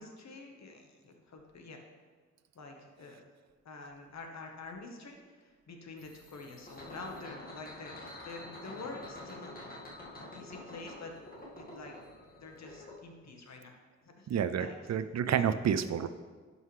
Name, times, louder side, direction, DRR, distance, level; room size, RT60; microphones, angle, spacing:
voice 1, 0.0-1.8 2.5-3.2 3.6-9.5 10.3-11.1 11.6-12.0 12.4-13.7 14.0-14.3 14.6-14.8, left 3 dB, 65° left, 2 dB, 1.2 m, -47 dB
sound 1, 6.0-13.0, left 1 dB, 30° left, 1.8 m, -48 dB
voice 2, 14.3-16.1, right 8 dB, 65° right, 11 dB, 0.5 m, -29 dB
11.0 x 5.5 x 3.2 m, 1.4 s
wide cardioid pair, 105°, 29 cm